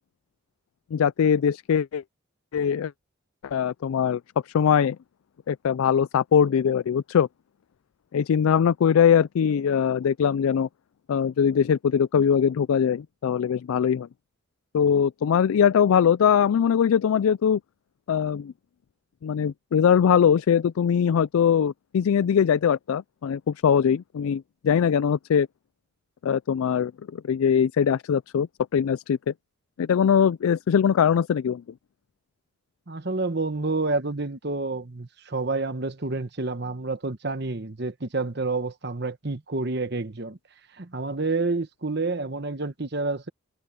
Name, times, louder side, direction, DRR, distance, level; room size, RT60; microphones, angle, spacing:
voice 1, 0.9-2.0 2.5-2.9 3.4-4.2 4.5-5.0 5.5-7.3 8.1-10.7 11.1-14.1 14.7-17.6 18.1-18.5 19.2-25.5 26.2-28.5 28.7-29.3 29.8-31.6, left 7 dB, 85° left, 0.3 m, -21 dB
voice 2, 32.9-40.4 40.8-43.3, right 3 dB, 50° right, 1.2 m, -29 dB
head